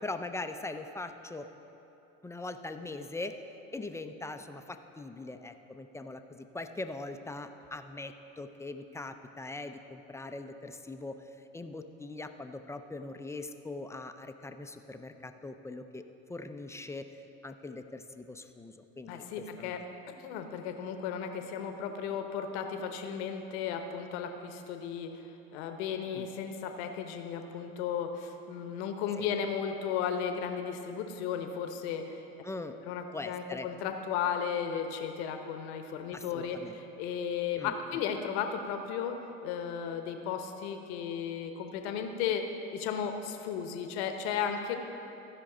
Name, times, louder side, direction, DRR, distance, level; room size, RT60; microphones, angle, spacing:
voice 1, 0.0-1.5 2.2-3.4 3.7-16.0 16.3-19.8 26.1-26.3 29.2-29.3 32.4-32.8 33.1-33.7 36.1-36.8 37.6-37.7, left 2 dB, 10° left, 7 dB, 0.4 m, -41 dB
voice 2, 19.1-19.8 20.2-32.2 32.9-39.2 39.4-42.4 42.7-44.8, left 7 dB, 80° left, 6 dB, 0.9 m, -35 dB
14.5 x 5.1 x 4.9 m, 3.0 s
supercardioid pair, 90°, 32 cm